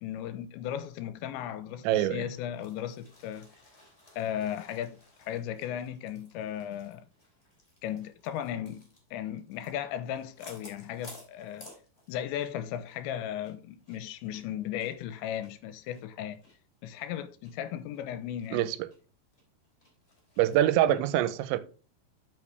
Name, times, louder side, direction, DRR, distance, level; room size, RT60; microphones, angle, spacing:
voice 1, 0.0-3.5 4.2-7.0 7.8-8.8 9.1-11.7 12.1-16.4 16.8-18.7 20.9-21.0, left 10 dB, 90° left, 2.9 m, -36 dB
voice 2, 1.8-2.2 18.5-18.8 20.4-21.6, right 12 dB, 85° right, 3.0 m, -24 dB
sound 1, 2.3-12.6 12.8-13.0 13.4-16.5 16.9-17.0 17.4-17.5 17.9-18.5 18.9-19.0 19.3-20.6, left 1 dB, 15° left, 2.7 m, -56 dB
8.7 x 6.2 x 3.2 m
omnidirectional pair, 5.2 m